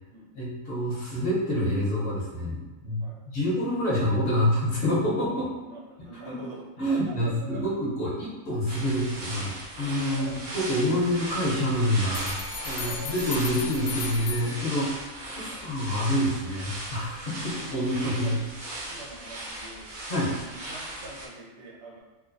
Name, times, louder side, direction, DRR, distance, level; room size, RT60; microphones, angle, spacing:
voice 1, 0.3-5.5 6.2-6.4 6.8-12.3 12.6-18.4 20.1-20.3, equal, 50° left, -6 dB, 0.9 m, -27 dB
voice 2, 5.6-7.8 10.1-10.4 12.7-14.0 15.5-15.7 18.2-18.4 18.8-22.0, right 2 dB, 65° right, -2 dB, 0.8 m, -45 dB
sound 1, 8.7-21.3, right 1 dB, 85° right, 1.1 m, -38 dB
sound 2, 12.1-15.2, left 5 dB, 80° left, 1.0 m, -37 dB
3.1 x 2.1 x 2.5 m, 1.1 s
omnidirectional pair, 1.6 m